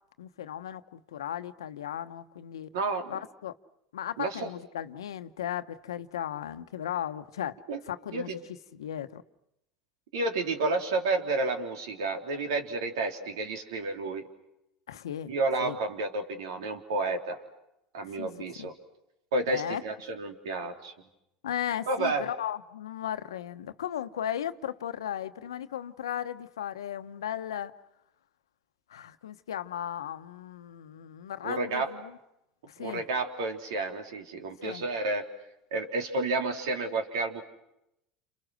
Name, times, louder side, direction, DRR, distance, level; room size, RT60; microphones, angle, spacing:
voice 1, 0.2-2.7 3.1-3.5 3.9-8.4 8.7-9.2 14.9-15.3 15.6-15.8 18.1-18.3 18.6-18.7 19.5-19.8 21.4-27.7 28.9-32.1 32.7-33.0 34.6-34.8, left 10 dB, 90° left, 1.0 m, -36 dB
voice 2, 2.7-3.1 4.2-4.5 7.7-7.8 8.1-8.4 10.1-14.3 15.3-17.4 17.9-18.7 19.3-20.9 21.9-22.3 31.4-31.9 32.8-35.3 35.7-37.4, right 3 dB, 80° right, 3.6 m, -30 dB
30.0 x 28.5 x 6.4 m
hypercardioid pair, 90°, 2 cm